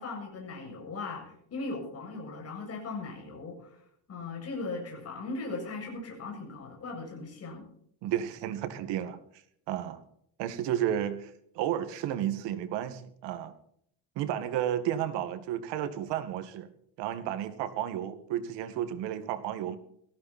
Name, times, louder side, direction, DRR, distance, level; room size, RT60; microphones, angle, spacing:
voice 1, 0.0-3.8 4.1-7.7, left 3 dB, 35° left, 0 dB, 7.6 m, -38 dB
voice 2, 8.0-9.2 9.7-10.0 10.4-13.5 14.2-16.7 17.0-19.8, right 11 dB, 90° right, 9 dB, 2.2 m, -32 dB
18.0 x 15.5 x 4.4 m, 0.68 s
cardioid pair, 160°, 41 cm